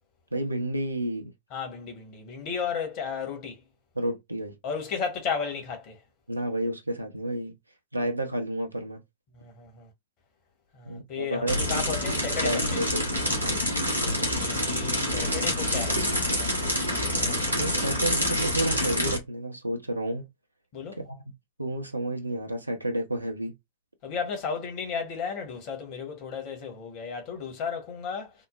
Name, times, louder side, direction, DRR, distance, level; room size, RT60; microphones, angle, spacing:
voice 1, 0.3-1.3 3.9-4.6 6.3-7.5 7.9-9.0 10.9-11.6 12.4-13.1 13.4-13.6 17.5-20.3 21.0-21.2 21.6-23.5, right 1 dB, 85° right, 0.7 m, -30 dB
voice 2, 1.5-3.6 4.6-6.0 9.3-9.9 10.7-12.8 14.5-16.4 20.7-21.0 24.0-28.3, left 6 dB, 45° left, 1.3 m, -34 dB
sound 1, 11.5-19.2, left 1 dB, 85° left, 1.2 m, -27 dB
3.6 x 2.1 x 2.5 m
figure-of-eight pair, 90°, 0 cm